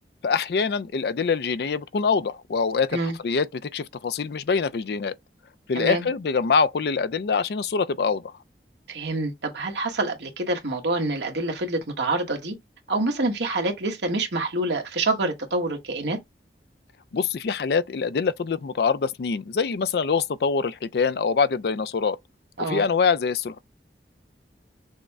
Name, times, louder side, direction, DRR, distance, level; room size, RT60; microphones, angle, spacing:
voice 1, 0.2-5.1 5.7-8.3 17.1-22.2 22.6-23.6, left 5 dB, 65° left, 0.4 m, -24 dB
voice 2, 5.7-6.1 8.9-12.5 12.9-16.2 22.6-22.8, right 2 dB, 85° right, 1.3 m, -26 dB
6.3 x 2.1 x 3.5 m
head